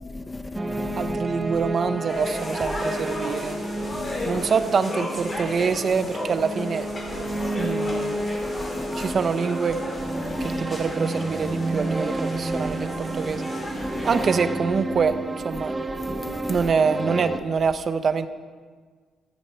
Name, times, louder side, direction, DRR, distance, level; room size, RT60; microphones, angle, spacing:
voice 1, 0.1-1.1 4.0-4.1 7.3-7.5 8.6-9.1 10.2-10.6 13.8-14.0 16.1-16.6, left 2 dB, 15° left, 0.6 m, -36 dB
sound 1, 0.5-17.4, right 2 dB, 20° right, 0.8 m, -30 dB
voice 2, 1.0-3.6 4.2-6.9 7.6-8.2 8.9-9.8 10.6-13.4 14.0-15.7 16.5-18.3, right 5 dB, 45° right, 0.8 m, -25 dB
sound 2, 2.1-14.4, left 1 dB, 35° left, 4.3 m, -34 dB
14.0 x 14.0 x 4.5 m
cardioid pair, 90°, 0 cm